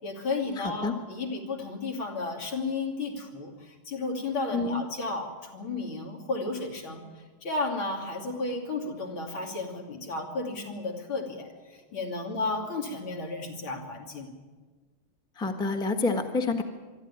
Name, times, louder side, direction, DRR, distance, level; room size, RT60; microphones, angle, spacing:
voice 1, 0.0-7.0 7.4-14.3, left 3 dB, 70° left, 1 dB, 3.6 m, -33 dB
voice 2, 0.6-0.9 4.5-4.8 15.3-16.6, left 3 dB, 5° left, 5 dB, 1.0 m, -28 dB
23.0 x 12.5 x 9.8 m, 1.4 s
omnidirectional pair, 2.3 m